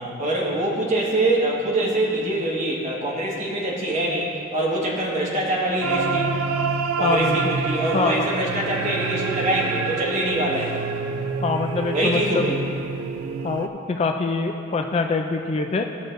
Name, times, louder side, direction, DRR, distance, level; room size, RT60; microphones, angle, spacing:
voice 1, 0.0-6.3 7.0-10.7 11.9-12.6, right 1 dB, 35° right, -4 dB, 1.6 m, -24 dB
sound 1, 5.8-13.7, right 5 dB, 90° right, 0.4 m, -27 dB
voice 2, 7.0-7.5 7.9-8.3 11.4-12.5 13.4-15.8, left 4 dB, 30° left, 4 dB, 0.3 m, -24 dB
14.5 x 6.4 x 2.6 m, 2.7 s
head